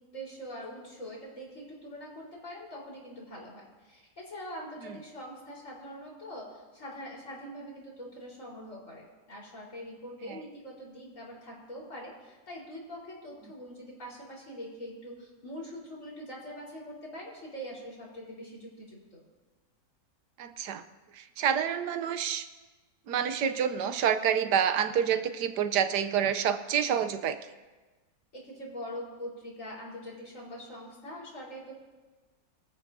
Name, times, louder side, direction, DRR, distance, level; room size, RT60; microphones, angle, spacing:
voice 1, 0.1-19.2 28.3-31.7, equal, 50° left, -4 dB, 4.8 m, -43 dB
voice 2, 20.4-20.8 21.1-22.5 23.1-27.4, right 8 dB, 85° right, 10 dB, 1.4 m, -28 dB
24.0 x 13.5 x 2.8 m, 1.2 s
omnidirectional pair, 1.7 m